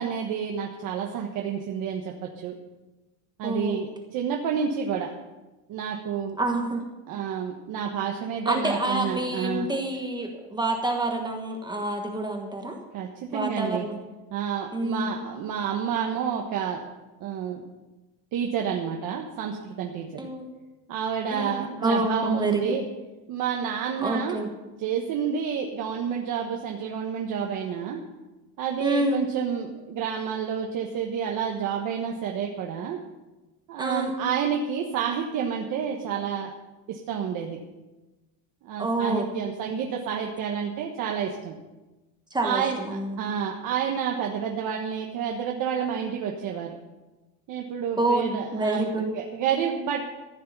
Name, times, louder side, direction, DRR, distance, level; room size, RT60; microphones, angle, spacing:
voice 1, 0.0-2.5 3.4-5.1 5.7-6.4 7.1-9.7 12.9-13.8 14.3-16.8 17.2-17.6 18.3-20.3 20.9-22.8 23.3-24.4 24.8-28.0 28.6-33.0 33.7-36.5 36.9-37.6 38.6-41.5 42.4-42.8 43.2-46.7 47.5-50.0, right 7 dB, 40° right, 1 dB, 1.3 m, -29 dB
voice 2, 3.4-3.8 6.4-6.8 8.4-12.8 13.3-14.0 14.7-15.1 20.2-20.5 21.3-22.8 24.0-24.5 28.8-29.2 33.8-34.2 38.8-39.3 39.7-39.8 42.3-43.3 48.0-49.1, right 2 dB, 10° right, 2 dB, 1.3 m, -27 dB
15.0 x 6.6 x 9.1 m, 1.1 s
cardioid pair, 175°, 47 cm